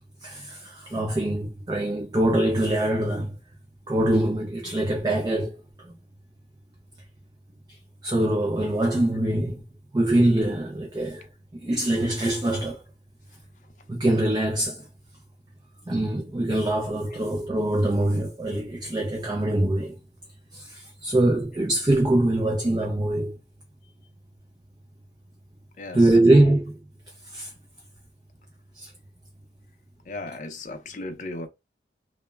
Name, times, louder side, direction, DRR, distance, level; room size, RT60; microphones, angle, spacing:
voice 1, 0.2-3.4 3.9-6.0 7.7-7.8 8.0-9.6 9.9-11.3 11.5-12.8 13.9-14.9 15.9-20.0 20.5-23.4 25.9-26.8 27.2-27.5 28.7-28.9, right 1 dB, 25° right, 0.4 m, -23 dB
voice 2, 30.1-31.5, left 2 dB, 45° left, 0.5 m, -35 dB
2.2 x 2.0 x 3.3 m
head